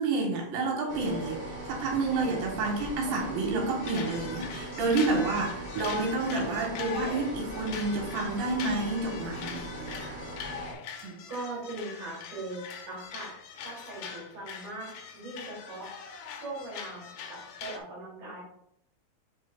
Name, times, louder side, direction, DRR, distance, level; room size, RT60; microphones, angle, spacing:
voice 1, 0.0-1.4 1.7-10.2 11.0-11.2, right 3 dB, 80° right, -1 dB, 3.0 m, -29 dB
sound 1, 0.8-3.4 3.8-17.8, left 6 dB, 80° left, 1.7 m, -43 dB
sound 2, 0.9-10.7, right 1 dB, 30° right, 1.2 m, -40 dB
voice 2, 11.3-13.3 13.6-15.9 16.4-17.0 17.3-18.4, right 2 dB, 60° right, -4 dB, 3.4 m, -40 dB
10.0 x 4.2 x 2.3 m, 0.75 s
omnidirectional pair, 4.2 m